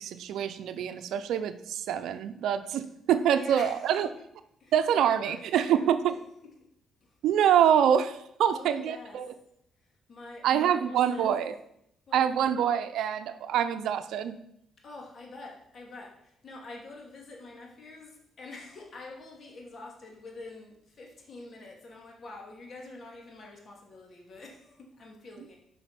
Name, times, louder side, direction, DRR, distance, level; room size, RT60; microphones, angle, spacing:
voice 1, 0.0-4.1 4.7-6.1 7.2-9.3 10.4-11.5 12.1-14.4, right 9 dB, 80° right, 10 dB, 0.6 m, -25 dB
voice 2, 3.3-4.1 4.6-5.9 7.0-7.2 8.4-9.4 9.8-11.4 12.1-12.3 14.8-25.6, left 2 dB, 50° left, 0 dB, 2.6 m, -46 dB
7.9 x 5.5 x 6.0 m, 0.74 s
cardioid pair, 75°, 0 cm